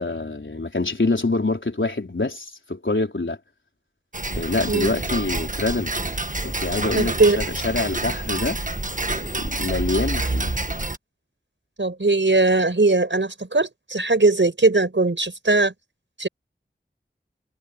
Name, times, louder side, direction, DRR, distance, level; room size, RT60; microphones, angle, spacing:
voice 1, 0.0-3.4 4.3-5.9 6.4-8.6 9.2-10.5, left 2 dB, 75° left, 4.2 m, -25 dB
Tick-tock, 4.1-11.0, right 2 dB, 40° right, 1.5 m, -27 dB
voice 2, 6.9-7.4 11.8-15.7 16.2-16.3, right 3 dB, 75° right, 5.4 m, -19 dB
wide cardioid pair, 45°, 20 cm